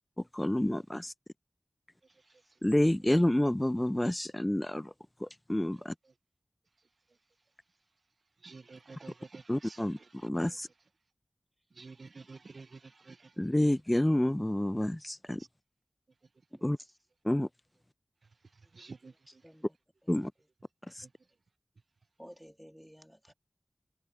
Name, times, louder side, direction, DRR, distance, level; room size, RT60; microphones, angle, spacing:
voice 1, 0.2-1.1 2.6-4.9 5.2-5.9 9.5-10.7 13.4-15.4 16.6-16.8 17.2-17.5 20.1-20.3 20.9-21.1, left 1 dB, 15° left, 0.4 m, -29 dB
voice 2, 8.4-9.8 11.8-13.3 18.7-19.1, right 4 dB, 80° right, 0.3 m, -49 dB
voice 3, 22.2-23.3, equal, ahead, 2.2 m, -52 dB
wide cardioid pair, 50°, 0 cm